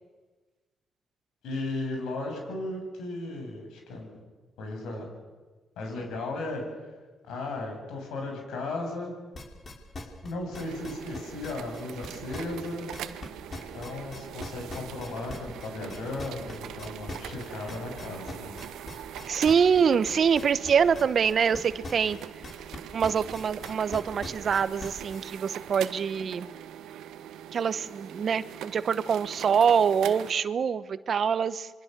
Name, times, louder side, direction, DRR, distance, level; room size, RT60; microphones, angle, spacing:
voice 1, 1.4-4.2 4.6-5.1 5.8-6.6 7.3-9.1 10.2-12.9 13.7-18.5, left 2 dB, 80° left, 2 dB, 7.9 m, -35 dB
sound 1, 9.3-13.3 13.5-22.8 23.0-25.2, left 2 dB, 45° left, 5.5 m, -40 dB
samsung laser printer rhythm mic movement, 10.5-30.3, right 11 dB, 80° right, 1.2 m, -42 dB
voice 2, 19.3-22.2 22.9-26.5 27.5-31.7, right 7 dB, 60° right, 14 dB, 1.1 m, -25 dB
27.5 x 24.0 x 6.9 m, 1.3 s
supercardioid pair, 55°, 0 cm